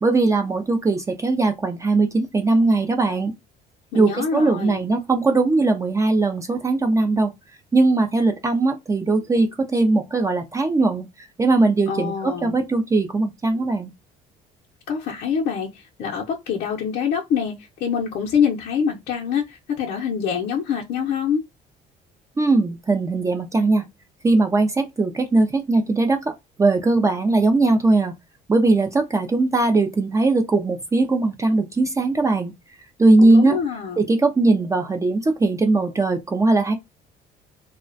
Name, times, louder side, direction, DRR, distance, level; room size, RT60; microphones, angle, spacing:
voice 1, 0.0-3.3 3.9-7.3 7.7-13.9 22.4-23.8 24.2-26.3 26.6-28.1 28.5-32.5 33.0-33.6 34.0-36.7, right 3 dB, 20° right, 0.4 m, -19 dB
voice 2, 3.9-4.8 11.9-12.6 14.9-17.5 17.8-21.4 33.2-34.1, left 7 dB, 70° left, 0.6 m, -25 dB
2.3 x 2.1 x 2.5 m
cardioid pair, 110°, 17 cm